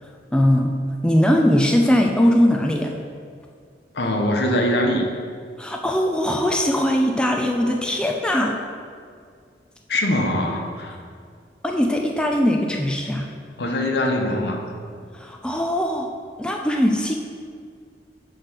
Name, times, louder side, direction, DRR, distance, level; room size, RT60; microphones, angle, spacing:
voice 1, 0.0-0.7 1.0-2.9 5.6-8.6 11.6-13.3 15.1-16.1 16.4-17.1, equal, 5° left, 1 dB, 0.4 m, -20 dB
voice 2, 3.9-5.1 9.9-11.0 13.6-14.6, left 1 dB, 70° left, 3 dB, 0.9 m, -22 dB
5.8 x 5.0 x 5.9 m, 2.1 s
head